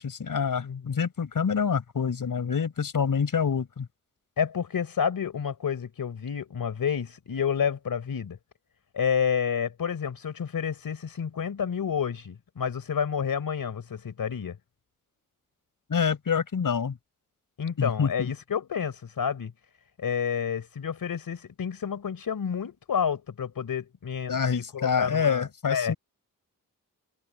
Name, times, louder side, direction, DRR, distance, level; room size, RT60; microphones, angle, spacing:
voice 1, 0.0-3.9 15.9-17.0 17.8-18.3 24.3-25.9, left 6 dB, 75° left, 4.6 m, -27 dB
voice 2, 0.6-1.0 4.4-8.4 8.9-14.6 17.6-19.5 20.0-25.9, left 7 dB, 90° left, 4.2 m, -30 dB
wide cardioid pair, 120°, 33 cm